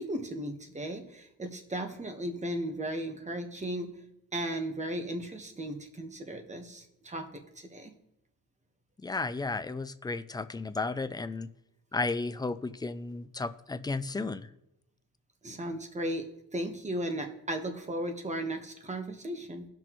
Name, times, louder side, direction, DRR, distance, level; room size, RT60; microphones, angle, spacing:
voice 1, 0.0-3.9 4.3-7.9 15.4-16.3 16.5-19.7, right 1 dB, 20° right, 5 dB, 1.2 m, -36 dB
voice 2, 9.0-11.5 11.9-14.5, left 3 dB, 15° left, 12 dB, 0.3 m, -33 dB
17.5 x 6.1 x 3.0 m, 0.85 s
wide cardioid pair, 125°, 32 cm